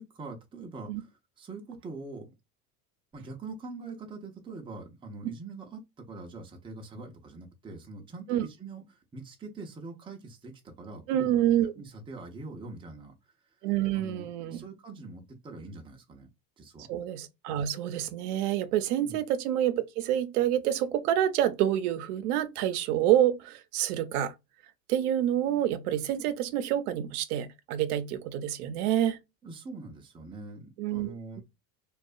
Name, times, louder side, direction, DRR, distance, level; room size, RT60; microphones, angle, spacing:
voice 1, 0.0-2.3 3.1-11.4 11.8-13.1 13.9-16.3 16.6-16.9 19.0-19.2 29.4-31.4, right 3 dB, 10° right, 0.5 m, -43 dB
voice 2, 11.1-11.7 13.6-14.6 16.8-24.3 24.9-29.2 30.8-31.4, right 11 dB, 85° right, 0.6 m, -27 dB
2.6 x 2.3 x 2.4 m
supercardioid pair, 130°, 44 cm